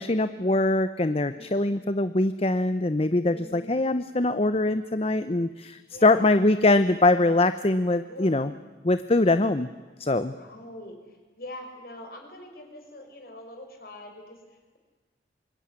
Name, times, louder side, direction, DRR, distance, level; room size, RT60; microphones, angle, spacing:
voice 1, 0.0-8.5 8.8-9.7 10.0-10.3, left 2 dB, 35° left, 11 dB, 0.7 m, -23 dB
voice 2, 1.2-1.8 3.2-3.8 5.9-6.4 8.0-8.6 10.2-14.8, left 1 dB, 55° left, 4 dB, 5.1 m, -44 dB
25.5 x 22.5 x 9.8 m, 1.4 s
head